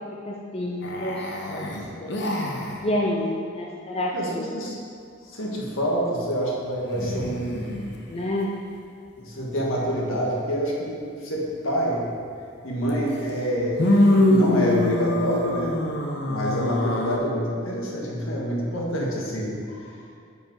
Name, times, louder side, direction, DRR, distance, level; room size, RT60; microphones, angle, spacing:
voice 1, 0.3-1.2 1.5-1.6 2.0-2.1 2.8-4.5 8.1-8.5, left 1 dB, 30° left, -2 dB, 0.6 m, -28 dB
sound 1, 0.8-2.8 6.9-7.9 12.9-13.0 13.8-17.2, left 1 dB, 55° left, 1.0 m, -23 dB
voice 2, 4.1-4.8 5.2-7.9 9.1-12.1 12.6-15.8 16.2-20.0, equal, 75° left, -3 dB, 1.7 m, -27 dB
9.7 x 5.3 x 4.7 m, 2.3 s
head